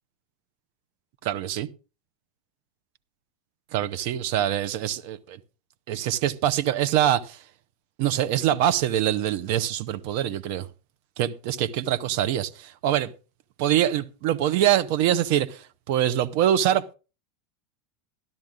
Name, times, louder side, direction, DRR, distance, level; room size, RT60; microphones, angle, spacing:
voice 1, 1.2-1.7 3.7-5.4 5.9-7.4 8.0-10.7 11.2-13.1 13.6-16.9, right 11 dB, 55° right, 0.9 m, -24 dB
13.0 x 12.0 x 3.7 m
figure-of-eight pair, 85°, 0 cm